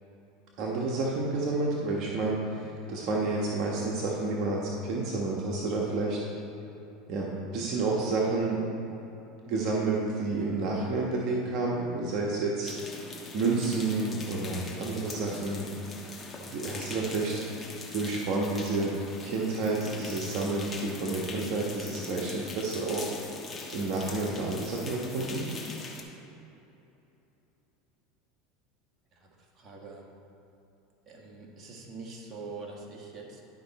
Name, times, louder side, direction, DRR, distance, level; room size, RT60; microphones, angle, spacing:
voice 1, 0.6-6.2 7.1-8.6 9.4-13.1 13.3-15.7 16.5-18.9 19.2-23.1 23.7-25.5, right 3 dB, 55° right, -3 dB, 1.3 m, -30 dB
sound 1, 12.6-26.0, left 3 dB, 25° left, 1.3 m, -42 dB
voice 2, 29.1-30.0 31.1-33.4, right 3 dB, 35° right, -2 dB, 1.7 m, -44 dB
11.5 x 5.6 x 4.2 m, 3.0 s
supercardioid pair, 115°, 0 cm